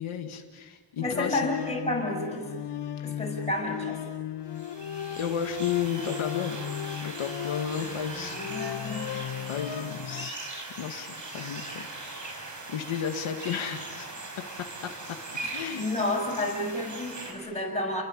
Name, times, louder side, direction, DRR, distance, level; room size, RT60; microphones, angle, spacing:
voice 1, 0.0-1.4 3.0-3.1 5.2-6.6 7.0-8.4 9.4-10.5 10.8-11.9 12.2-12.3 12.7-14.1 14.8-15.2 15.5-15.8, left 8 dB, 80° left, 4 dB, 2.0 m, -33 dB
sound 1, 1.0-10.3, left 10 dB, 60° left, 1.1 m, -36 dB
voice 2, 1.0-2.6 3.0-4.0 7.8-9.1 15.4-18.0, left 1 dB, 15° left, -1 dB, 6.8 m, -31 dB
sound 2, 4.5-17.3, right 2 dB, 40° right, 5.7 m, -40 dB
30.0 x 22.0 x 8.7 m, 1.5 s
wide cardioid pair, 170°, 48 cm